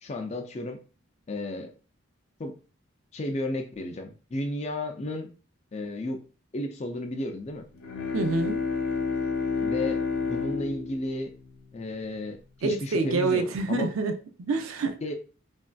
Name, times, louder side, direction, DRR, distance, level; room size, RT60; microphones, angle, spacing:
voice 1, 0.0-0.8 1.3-1.7 2.4-2.6 3.1-5.3 5.7-6.2 6.5-7.7 9.6-10.0 10.3-11.3 11.7-12.4 12.6-13.9 15.0-15.1, left 1 dB, 30° left, 0.4 m, -33 dB
Bowed string instrument, 7.7-12.3, left 4 dB, 85° left, 0.6 m, -30 dB
voice 2, 8.1-8.6 12.6-14.9, right 3 dB, 80° right, 0.5 m, -27 dB
3.1 x 2.6 x 2.2 m
head